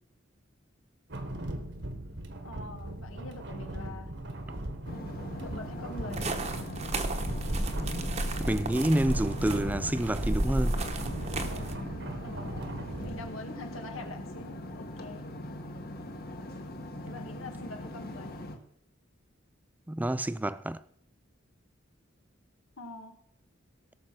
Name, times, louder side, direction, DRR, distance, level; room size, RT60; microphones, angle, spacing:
sound 1, 1.1-13.3, right 1 dB, 60° right, 1.4 m, -39 dB
voice 1, 2.4-4.1 5.4-6.3 12.2-15.3 17.0-18.3 22.8-23.2, left 2 dB, 90° left, 1.9 m, -44 dB
sound 2, 4.9-18.6, left 1 dB, 50° left, 1.5 m, -41 dB
sound 3, 6.1-11.8, right 1 dB, 35° right, 1.0 m, -33 dB
voice 2, 8.4-10.8 19.9-20.8, right 1 dB, 10° right, 0.4 m, -28 dB
17.5 x 6.4 x 6.0 m
head